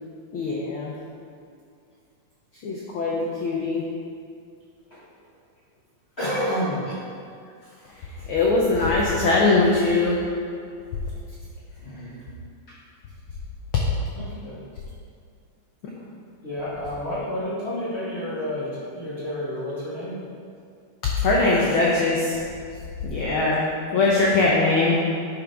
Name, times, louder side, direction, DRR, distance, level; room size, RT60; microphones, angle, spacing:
voice 1, 0.3-0.9 2.6-3.9 7.8-10.2 11.9-12.0 21.0-22.4 23.0-25.0, left 3 dB, 90° left, -4 dB, 1.1 m, -21 dB
voice 2, 6.2-6.9 11.8-12.2 14.1-14.6 16.4-20.2, equal, 25° left, -11 dB, 1.5 m, -30 dB
10.5 x 5.4 x 3.5 m, 2.4 s
omnidirectional pair, 3.5 m